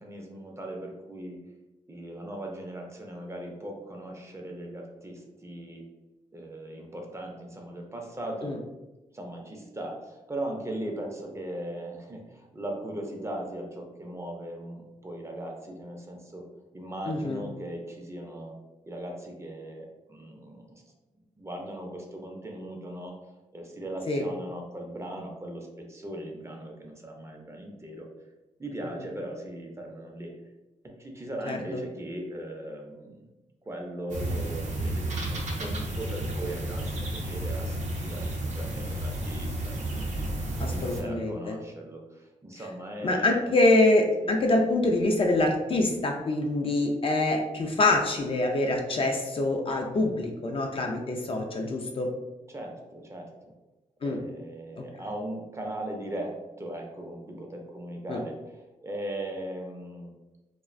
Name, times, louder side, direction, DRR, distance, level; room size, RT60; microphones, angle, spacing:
voice 1, 0.0-1.4 1.9-5.9 6.3-8.6 9.1-16.5 16.7-18.6 18.8-20.8 21.4-23.1 23.5-28.1 28.6-30.3 30.8-33.2 33.7-40.1 40.7-43.6 44.2-44.3 52.5-53.3 54.0-60.1, right 1 dB, 20° right, 1 dB, 0.5 m, -38 dB
voice 2, 17.1-17.4 24.1-24.2 31.5-31.8 40.6-41.6 43.0-52.1 54.0-54.2 58.1-58.2, left 2 dB, 40° left, 2 dB, 0.4 m, -25 dB
sound 1, 34.1-41.0, right 1 dB, 65° right, 0.6 m, -32 dB
2.4 x 2.1 x 2.4 m, 1.0 s
cardioid pair, 70°, 14 cm